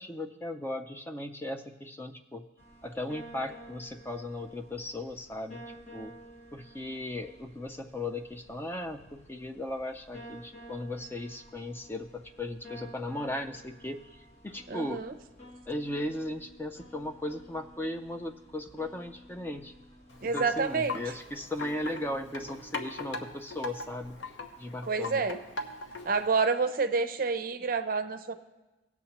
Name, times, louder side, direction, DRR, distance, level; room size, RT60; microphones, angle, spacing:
voice 1, 0.0-2.5 2.8-5.6 5.9-6.1 6.5-15.0 15.7-19.7 20.3-24.2 24.6-25.2, left 1 dB, 10° left, 5 dB, 0.3 m, -37 dB
sound 1, 2.6-22.5, right 1 dB, 35° left, 1.2 m, -52 dB
voice 2, 14.7-15.1 20.2-21.0 24.9-25.4 26.1-28.3, right 4 dB, 45° right, 9 dB, 0.5 m, -28 dB
Wind chime, 20.1-26.3, left 3 dB, 75° left, 0.9 m, -41 dB
18.0 x 7.1 x 2.9 m, 1.1 s
head